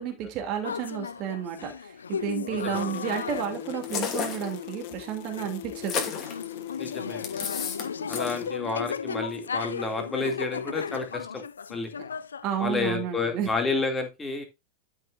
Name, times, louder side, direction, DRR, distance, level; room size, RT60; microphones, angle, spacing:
voice 1, 0.0-6.0 12.4-13.5, right 9 dB, 40° right, 3 dB, 2.7 m, -31 dB
sound 1, 0.6-12.5, left 6 dB, 70° left, 0.5 m, -36 dB
voice 2, 2.5-2.8 6.8-7.3 8.1-11.4 11.7-11.9 12.6-14.4, left 3 dB, 15° left, 4 dB, 2.4 m, -30 dB
sound 2, 2.7-8.5, left 12 dB, 50° left, 0.8 m, -40 dB
sound 3, 3.8-4.5 5.8-6.4 7.2-7.9 8.1-8.4, left 6 dB, 30° left, 2.6 m, -31 dB
12.0 x 6.3 x 2.5 m, 0.24 s
figure-of-eight pair, 90°, 0 cm